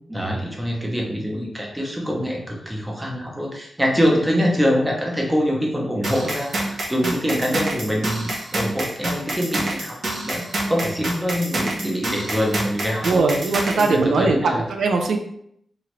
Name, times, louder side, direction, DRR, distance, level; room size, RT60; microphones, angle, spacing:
voice 1, 0.1-14.6, equal, 10° right, -1 dB, 0.7 m, -24 dB
sound 1, 6.0-13.9, right 1 dB, 55° right, 0.7 m, -27 dB
voice 2, 13.0-15.2, right 3 dB, 90° right, 3 dB, 0.4 m, -20 dB
3.0 x 2.4 x 3.0 m, 0.72 s
wide cardioid pair, 120°, 0 cm